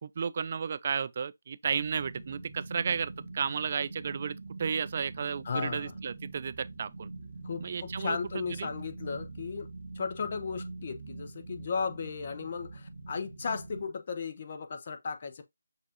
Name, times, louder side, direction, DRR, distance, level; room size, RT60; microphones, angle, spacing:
voice 1, 0.0-7.1 7.6-8.7, right 6 dB, 40° right, 0.3 m, -33 dB
sound 1, 1.6-13.8, right 3 dB, 70° right, 0.9 m, -44 dB
voice 2, 5.4-5.9 7.4-9.7 9.9-15.4, left 5 dB, 40° left, 0.7 m, -35 dB
6.6 x 2.4 x 2.8 m
figure-of-eight pair, 160°, 0 cm